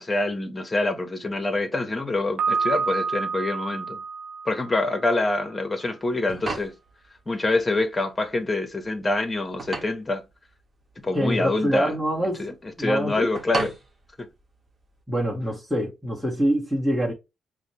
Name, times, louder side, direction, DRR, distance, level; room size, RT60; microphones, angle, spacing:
voice 1, 0.0-4.0 4.5-6.7 7.3-10.2 11.0-11.9 12.4-13.7 14.2-14.3, left 2 dB, 25° left, 1.1 m, -26 dB
Piano, 2.4-5.3, right 5 dB, 60° right, 0.8 m, -28 dB
sound 1, 6.0-15.0, right 3 dB, 35° right, 1.2 m, -37 dB
voice 2, 11.1-13.3 15.1-17.1, equal, ahead, 1.6 m, -25 dB
5.0 x 2.2 x 3.0 m
cardioid pair, 80°, 0 cm